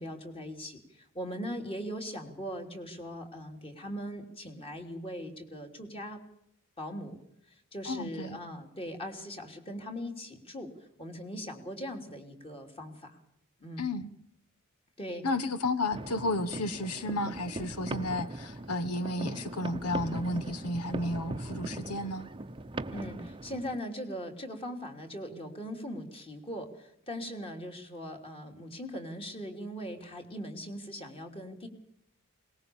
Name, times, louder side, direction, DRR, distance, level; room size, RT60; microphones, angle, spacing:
voice 1, 0.0-6.2 6.8-7.2 7.7-10.7 11.0-13.2 13.6-13.9 15.0-15.2 22.9-31.7, equal, 25° left, 4 dB, 3.3 m, -40 dB
voice 2, 7.8-8.4 13.8-14.1 15.2-22.3, left 2 dB, 90° left, 14 dB, 1.3 m, -32 dB
sound 1, 15.9-23.8, right 2 dB, 20° right, 0.8 m, -40 dB
22.0 x 19.5 x 7.1 m, 0.75 s
head